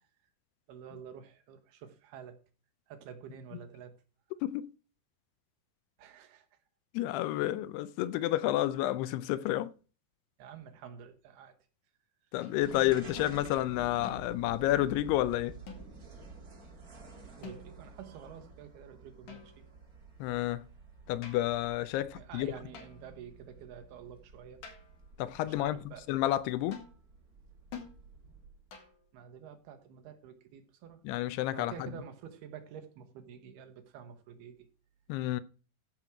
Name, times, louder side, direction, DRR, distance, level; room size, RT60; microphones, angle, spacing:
voice 1, 0.7-2.4 2.9-4.0 6.0-6.5 10.4-11.5 17.4-19.6 22.1-24.6 25.4-26.1 29.1-31.0 31.5-34.7, right 8 dB, 75° right, 3.2 m, -49 dB
voice 2, 6.9-9.7 12.3-15.6 20.2-20.6 21.1-22.5 25.2-25.8 26.1-26.8 31.1-31.7 35.1-35.4, left 14 dB, 80° left, 2.6 m, -30 dB
sound 1, 12.4-12.6 13.2-13.4 14.0-14.5 15.7-16.1 17.4-17.9 19.3-19.8 21.2-21.6 22.7-23.2 24.6-25.1 26.7-27.0 27.7-28.0 28.7-29.1, left 6 dB, 55° left, 3.2 m, -48 dB
sound 2, 12.6-28.8, right 3 dB, 35° right, 1.4 m, -51 dB
14.5 x 6.1 x 4.9 m
omnidirectional pair, 4.7 m